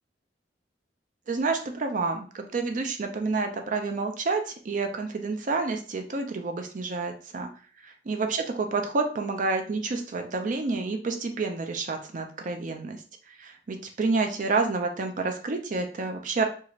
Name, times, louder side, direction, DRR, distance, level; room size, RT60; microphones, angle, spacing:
voice 1, 1.3-7.5 8.1-13.0 13.3-16.4, right 3 dB, 50° right, 5 dB, 0.5 m, -29 dB
2.6 x 2.4 x 3.0 m, 0.41 s
head